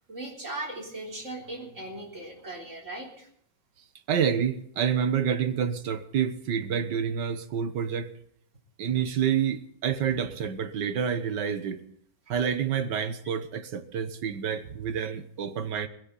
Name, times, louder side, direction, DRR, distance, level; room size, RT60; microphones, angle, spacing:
voice 1, 0.1-3.3, right 2 dB, 45° right, 4.2 m, -38 dB
voice 2, 4.1-8.1 8.8-11.8 12.3-15.9, right 8 dB, 85° right, 1.7 m, -28 dB
19.5 x 17.0 x 4.1 m
omnidirectional pair, 1.8 m